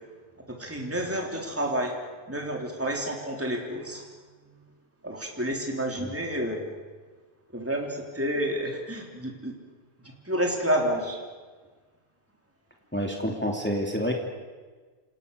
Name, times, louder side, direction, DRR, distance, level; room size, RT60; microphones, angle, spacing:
voice 1, 0.5-1.9 2.3-4.1 5.0-6.7 7.5-9.5 10.0-11.2, equal, 10° right, 1 dB, 3.5 m, -29 dB
voice 2, 12.9-14.1, equal, 10° left, 1 dB, 3.0 m, -28 dB
28.5 x 28.5 x 6.9 m, 1.4 s
omnidirectional pair, 1.2 m